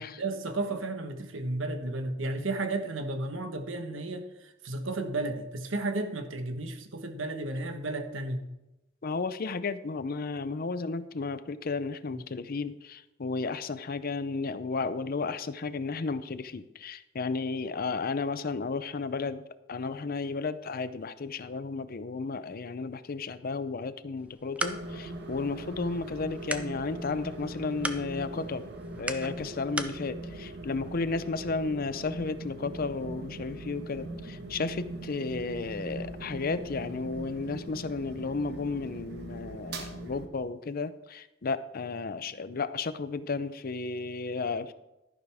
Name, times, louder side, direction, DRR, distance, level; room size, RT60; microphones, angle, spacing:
voice 1, 0.2-8.4 12.1-12.2, right 2 dB, 90° right, 7 dB, 1.3 m, -33 dB
voice 2, 9.0-28.7 29.0-44.7, left 4 dB, 50° left, 14 dB, 0.6 m, -33 dB
sound 1, 24.2-30.0, right 1 dB, 5° right, 0.6 m, -39 dB
sound 2, 24.6-40.3, right 1 dB, 60° right, 1.4 m, -41 dB
12.0 x 11.0 x 3.5 m, 0.97 s
head